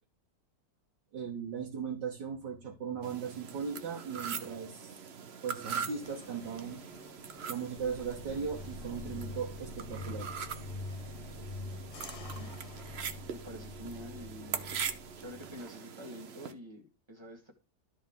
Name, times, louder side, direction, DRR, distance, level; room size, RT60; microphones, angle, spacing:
voice 1, 1.1-5.0 5.4-6.8 7.5-10.3, right 6 dB, 75° right, 1 dB, 1.8 m, -38 dB
sound 1, 3.0-16.5, right 7 dB, 55° right, 0.7 m, -42 dB
sound 2, 6.0-13.2, left 5 dB, 65° left, 1.9 m, -55 dB
sound 3, 7.8-15.6, left 2 dB, 30° left, 0.8 m, -45 dB
voice 2, 12.3-12.6 13.3-14.7 15.2-17.5, equal, 15° right, 4 dB, 1.4 m, -47 dB
12.5 x 4.4 x 3.5 m, 0.32 s
omnidirectional pair, 1.9 m